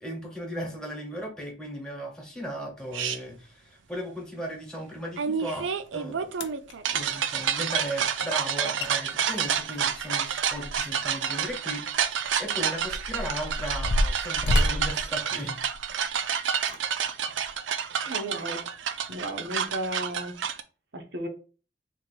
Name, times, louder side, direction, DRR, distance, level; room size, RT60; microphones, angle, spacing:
voice 1, 0.0-6.3 6.9-15.6, equal, 5° left, 0 dB, 1.3 m, -36 dB
sound 1, 2.9-3.2 5.2-20.6, right 8 dB, 80° right, 0.5 m, -29 dB
sound 2, 5.9-6.0 6.3-6.7 8.5-8.6 8.8-8.9 9.2-11.0 11.4-11.5 12.2-16.0 16.6-16.8 17.4-17.5, left 1 dB, 70° left, 0.5 m, -29 dB
voice 2, 18.1-18.7 19.1-20.3 20.9-21.3, right 1 dB, 60° right, 4 dB, 1.0 m, -34 dB
3.7 x 2.9 x 4.4 m, 0.35 s
head